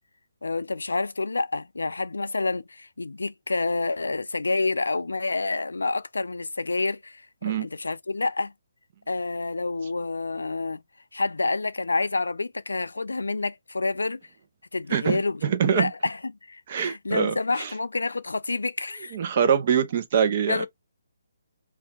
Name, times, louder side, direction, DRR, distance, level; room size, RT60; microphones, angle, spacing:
voice 1, 0.4-8.5 9.1-10.8 11.1-14.2 14.7-19.2 20.5-20.7, left 3 dB, 90° left, 0.4 m, -28 dB
voice 2, 14.9-15.9 16.7-17.7 19.1-20.7, right 7 dB, 45° right, 0.7 m, -24 dB
2.6 x 2.4 x 3.5 m
hypercardioid pair, 150°, 0 cm